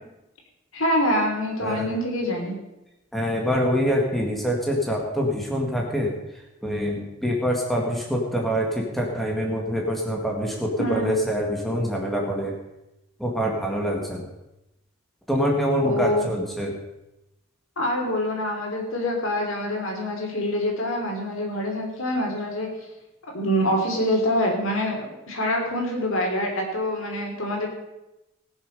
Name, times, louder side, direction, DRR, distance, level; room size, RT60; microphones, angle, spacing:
voice 1, 0.7-2.6 10.8-11.2 15.8-16.3 17.8-22.7 23.3-27.7, left 1 dB, 65° left, 1 dB, 3.3 m, -25 dB
voice 2, 1.6-1.9 3.1-12.5 13.2-14.3 15.3-16.7, equal, ahead, -1 dB, 1.9 m, -25 dB
19.0 x 7.1 x 5.4 m, 0.95 s
head